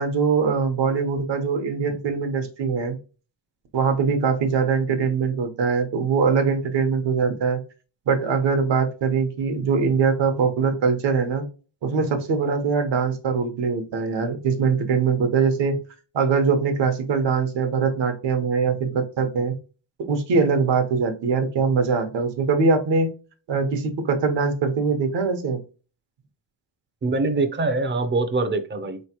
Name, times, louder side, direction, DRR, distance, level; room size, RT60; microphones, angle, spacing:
voice 1, 0.0-3.0 3.7-7.6 8.1-11.4 11.8-15.8 16.1-19.5 20.0-23.1 23.5-25.6, right 5 dB, 65° right, 7 dB, 1.0 m, -22 dB
voice 2, 27.0-29.0, right 3 dB, 25° right, 9 dB, 0.5 m, -23 dB
4.0 x 3.2 x 2.8 m, 0.35 s
cardioid pair, 140°, 46 cm